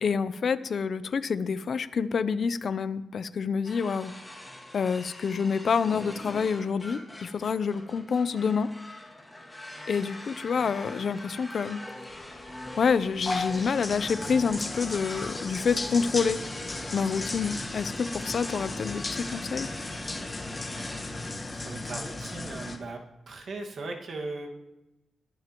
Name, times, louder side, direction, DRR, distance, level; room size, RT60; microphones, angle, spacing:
voice 1, 0.0-4.1 4.7-8.7 9.9-11.8 12.8-16.4 16.9-19.7, left 6 dB, 60° left, 15 dB, 0.6 m, -27 dB
sound 1, 3.6-21.3, left 1 dB, 10° left, 2.2 m, -43 dB
sound 2, 12.1-22.8, left 2 dB, 25° left, 1.4 m, -36 dB
voice 2, 21.5-23.0 23.3-24.5, right 3 dB, 60° right, 2 dB, 1.8 m, -38 dB
21.0 x 11.0 x 3.0 m, 0.98 s
wide cardioid pair, 120°, 0 cm